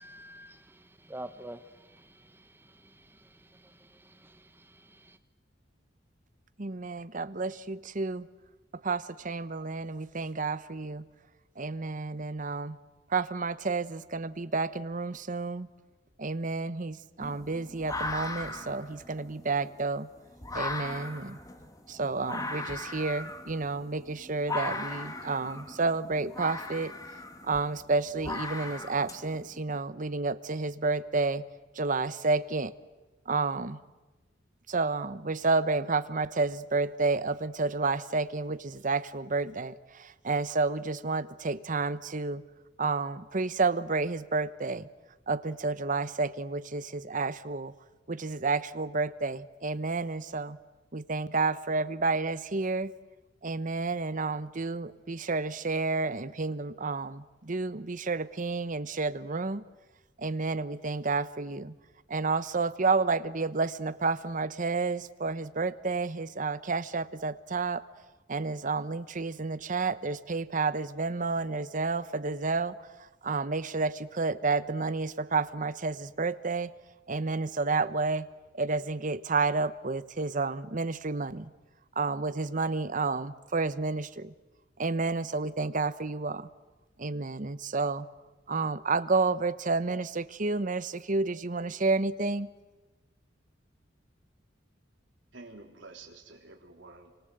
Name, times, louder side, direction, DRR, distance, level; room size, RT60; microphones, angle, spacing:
voice 1, 0.0-5.2, right 1 dB, 10° right, 10 dB, 1.1 m, -49 dB
voice 2, 6.6-8.3 8.8-11.0 11.6-12.8 13.1-15.7 16.2-20.1 20.5-21.4 21.9-26.9 27.4-31.4 31.8-32.7 33.3-33.8 34.7-42.4 42.8-44.9 45.3-47.7 48.1-50.6 50.9-52.9 53.4-59.6 60.2-61.7 62.1-67.8 68.3-72.8 73.2-76.7 77.1-78.3 78.5-81.4 82.0-84.3 84.8-86.5 87.0-88.1 88.5-92.5, right 3 dB, 45° right, 14 dB, 0.9 m, -30 dB
sound 1, 17.2-29.6, left 2 dB, 20° left, 1.9 m, -38 dB
voice 3, 95.3-97.1, right 3 dB, 70° right, 2 dB, 3.9 m, -49 dB
28.5 x 26.0 x 8.0 m, 1.2 s
head